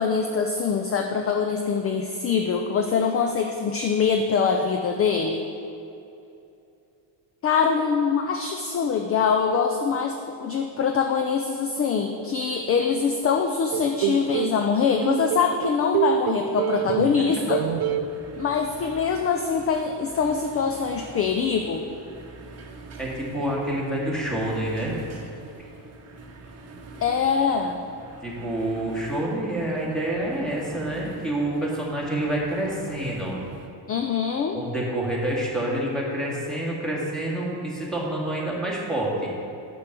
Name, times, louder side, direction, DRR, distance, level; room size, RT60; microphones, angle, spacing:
voice 1, 0.0-5.4 7.4-17.6 18.4-21.8 27.0-27.8 33.9-34.6, left 6 dB, 30° left, 4 dB, 0.5 m, -24 dB
sound 1, 13.7-14.6 15.0-17.2 17.5-18.1, right 11 dB, 50° right, 0.6 m, -26 dB
sound 2, 17.5-33.7, right 3 dB, 35° right, 1.0 m, -45 dB
voice 2, 23.0-24.9 28.2-33.3 34.5-39.3, right 1 dB, ahead, -5 dB, 2.0 m, -27 dB
6.8 x 6.1 x 6.8 m, 2.7 s
cardioid pair, 125°, 45 cm